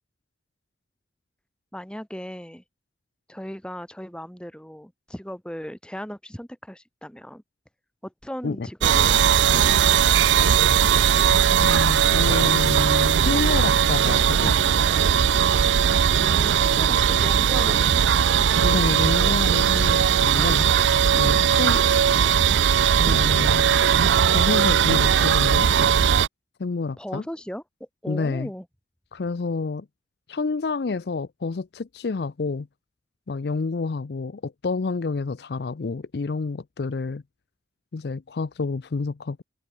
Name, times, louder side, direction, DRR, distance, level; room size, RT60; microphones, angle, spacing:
voice 1, 1.7-2.6 3.3-7.4 8.0-10.4 16.2-18.5 21.3-21.5 27.0-27.6 28.0-28.6, equal, 5° left, 1.6 m, -37 dB
sound 1, 8.8-26.3, right 8 dB, 90° right, 0.5 m, -19 dB
voice 2, 11.5-15.0 18.6-20.7 21.1-21.8 23.0-23.7 24.3-25.7 26.6-27.2 28.1-28.5 29.1-29.9 30.3-32.7 33.3-37.2 37.9-39.4, left 4 dB, 60° left, 0.5 m, -28 dB
head